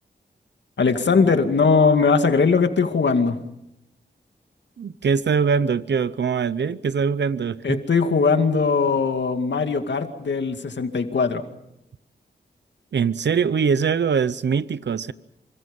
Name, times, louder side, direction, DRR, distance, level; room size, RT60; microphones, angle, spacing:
voice 1, 0.8-3.4 7.6-11.4, left 5 dB, 85° left, 7 dB, 2.3 m, -20 dB
voice 2, 4.8-7.8 12.9-15.1, right 6 dB, 80° right, 15 dB, 0.8 m, -22 dB
28.5 x 25.5 x 5.4 m, 0.82 s
cardioid pair, 55°, 18 cm